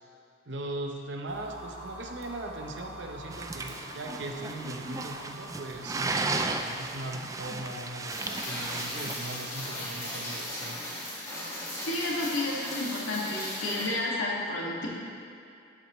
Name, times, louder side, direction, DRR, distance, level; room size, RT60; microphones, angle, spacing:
voice 1, 0.5-10.8, right 1 dB, 60° right, 2 dB, 0.8 m, -39 dB
sound 1, 1.3-10.5, right 1 dB, 85° right, 1.4 m, -48 dB
sound 2, 3.3-9.1, right 3 dB, 15° right, 0.3 m, -35 dB
Rain, 8.1-13.9, left 1 dB, 15° left, 1.7 m, -37 dB
voice 2, 11.8-14.9, left 2 dB, 80° left, -4 dB, 1.9 m, -31 dB
12.0 x 7.9 x 3.1 m, 2.6 s
head